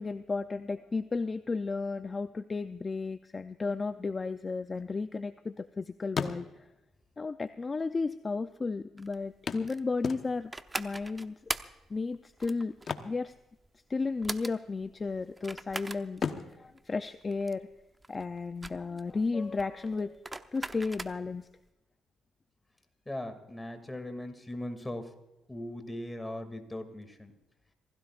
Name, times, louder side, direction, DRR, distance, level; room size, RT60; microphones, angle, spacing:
voice 1, 0.0-6.7 7.2-10.5 10.8-11.3 11.9-12.7 13.0-13.3 13.9-17.7 18.1-20.2 20.5-21.5, left 4 dB, 30° left, 10 dB, 0.5 m, -33 dB
sound 1, 4.4-5.7 6.0-6.9 7.8-7.9 8.1-8.2 9.5-10.7 12.7-14.0 14.3-14.5 15.0-15.6 16.1-17.9 19.9-20.0 20.4-20.5, left 6 dB, 50° left, 1.1 m, -38 dB
sound 2, 9.0-21.5, right 2 dB, 15° right, 0.8 m, -41 dB
voice 2, 23.1-25.1 25.5-27.3, left 1 dB, 10° left, 7 dB, 2.5 m, -39 dB
26.0 x 17.0 x 2.5 m, 0.99 s
cardioid pair, 90°, 0 cm